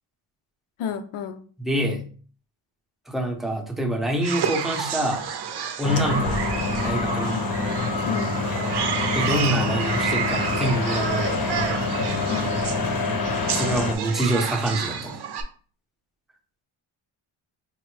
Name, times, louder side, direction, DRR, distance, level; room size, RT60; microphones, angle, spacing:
voice 1, 0.8-1.4 7.3-7.4 8.1-8.4 12.3-12.6, left 7 dB, 90° left, 9 dB, 0.6 m, -31 dB
voice 2, 1.6-2.0 3.1-5.2 5.8-6.4 6.8-7.4 9.1-11.6 13.5-15.2, right 1 dB, ahead, 2 dB, 0.6 m, -26 dB
sound 1, 4.2-15.4, right 7 dB, 55° right, 0.6 m, -30 dB
sound 2, 5.8-13.9, left 3 dB, 45° left, 0.7 m, -26 dB
4.3 x 2.0 x 3.1 m, 0.42 s
cardioid pair, 95°, 49 cm